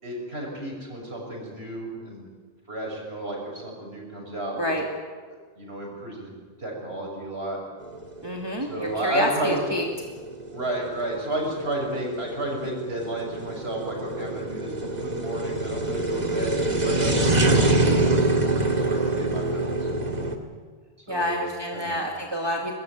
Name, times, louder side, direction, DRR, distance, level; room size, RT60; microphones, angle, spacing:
voice 1, 0.0-2.2 2.7-4.7 5.6-6.3 6.6-7.6 8.7-9.6 10.5-17.4 18.0-19.8 21.1-21.4 21.7-22.0, right 1 dB, 85° right, -1 dB, 6.4 m, -32 dB
sound 1, 7.9-20.3, right 2 dB, 45° right, 2.2 m, -25 dB
voice 2, 8.2-9.9 21.1-22.7, equal, 25° right, -1 dB, 2.4 m, -28 dB
23.5 x 20.0 x 9.3 m, 1.5 s
omnidirectional pair, 1.0 m